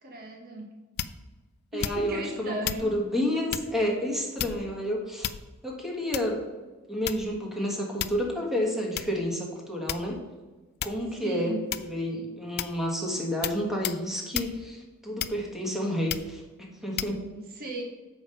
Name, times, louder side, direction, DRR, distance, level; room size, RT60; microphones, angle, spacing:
voice 1, 0.0-0.7 1.7-3.0 11.0-11.7 17.3-17.8, right 1 dB, 45° right, 2 dB, 1.0 m, -36 dB
sound 1, 1.0-1.3 1.8-2.2 2.6-2.9 3.5-3.7 4.4-4.8 5.2-5.7 6.1-6.4 7.1-7.4 8.0-8.3 9.0-9.1 9.9-10.3 10.8-11.1 11.7-12.0 12.6-12.8 13.4-13.6 13.8-14.0 14.3-14.5 15.2-15.6 16.1-16.3 17.0-17.1, left 11 dB, 50° left, 0.4 m, -33 dB
voice 2, 1.7-5.3 5.6-6.4 6.9-10.2 10.8-11.6 11.8-17.2, equal, ahead, -1 dB, 1.4 m, -30 dB
7.2 x 5.1 x 5.4 m, 1.2 s
head